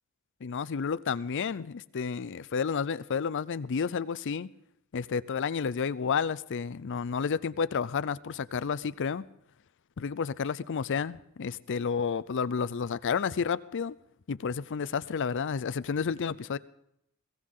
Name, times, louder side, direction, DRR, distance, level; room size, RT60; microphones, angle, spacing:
voice 1, 0.4-4.5 4.9-9.2 10.0-14.0 14.3-16.6, left 6 dB, 55° left, 0.5 m, -31 dB
21.5 x 16.5 x 3.7 m
head